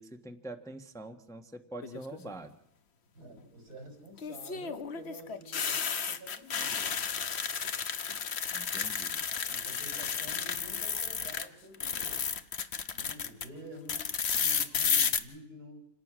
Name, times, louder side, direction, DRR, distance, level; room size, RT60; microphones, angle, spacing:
voice 1, 0.0-2.5 8.5-9.2, right 2 dB, ahead, 5 dB, 1.1 m, -44 dB
sound 1, 1.8-2.3 4.2-11.5 11.7-13.5 13.9-15.2, left 6 dB, 50° left, 1.1 m, -32 dB
voice 2, 3.2-6.9 9.5-12.4 12.9-15.8, right 1 dB, 85° right, 4 dB, 5.6 m, -49 dB
27.5 x 18.5 x 6.2 m, 0.78 s
omnidirectional pair, 1.6 m